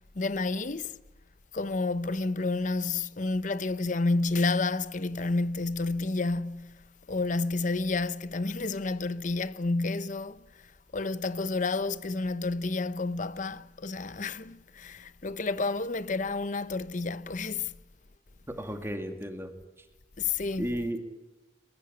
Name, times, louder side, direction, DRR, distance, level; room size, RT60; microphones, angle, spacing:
voice 1, 0.2-1.0 1.5-10.4 10.9-17.7 20.2-20.7, left 3 dB, 45° left, 0.8 m, -30 dB
voice 2, 18.5-19.5 20.6-21.0, equal, 15° right, 2.3 m, -33 dB
23.0 x 21.0 x 9.8 m
head